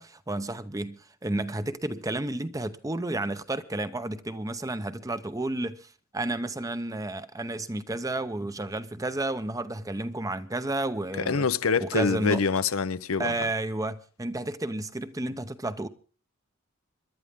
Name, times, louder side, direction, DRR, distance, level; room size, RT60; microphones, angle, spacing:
voice 1, 0.0-5.9 6.1-11.5 11.8-12.4 13.2-15.9, right 2 dB, 15° right, 0.8 m, -31 dB
voice 2, 11.3-13.5, left 5 dB, 85° left, 0.8 m, -26 dB
26.5 x 11.5 x 3.7 m
head